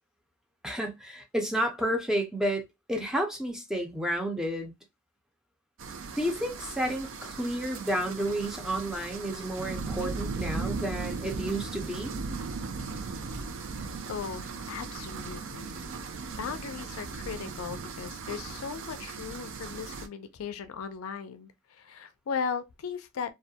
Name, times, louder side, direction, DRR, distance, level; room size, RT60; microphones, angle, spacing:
voice 1, 0.6-2.6 2.9-4.7 6.2-12.1, right 1 dB, 5° right, 0.5 m, -31 dB
sound 1, 5.8-20.1, right 4 dB, 60° right, 0.4 m, -37 dB
voice 2, 14.1-15.8 16.4-23.3, left 6 dB, 75° left, 0.4 m, -37 dB
2.3 x 2.1 x 2.7 m
head